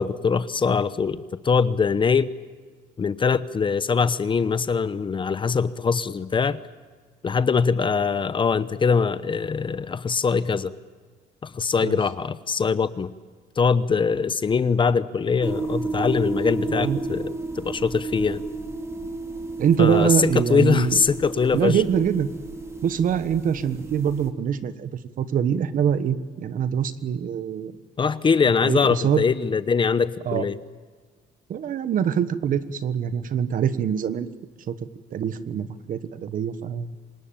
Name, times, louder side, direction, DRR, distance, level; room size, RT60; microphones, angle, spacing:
voice 1, 0.0-2.3 3.0-6.6 7.2-10.7 11.4-13.1 13.6-18.4 19.8-21.8 28.0-30.6, left 5 dB, 30° left, 15 dB, 0.9 m, -22 dB
sound 1, 15.4-24.3, right 3 dB, 15° right, 2.7 m, -32 dB
voice 2, 19.6-21.0 21.5-22.3 22.8-24.9 25.2-27.7 28.6-29.2 30.2-30.5 31.5-34.3 34.7-36.9, right 8 dB, 55° right, 13 dB, 1.3 m, -24 dB
26.0 x 20.5 x 8.9 m, 1.5 s
cardioid pair, 110°, 17 cm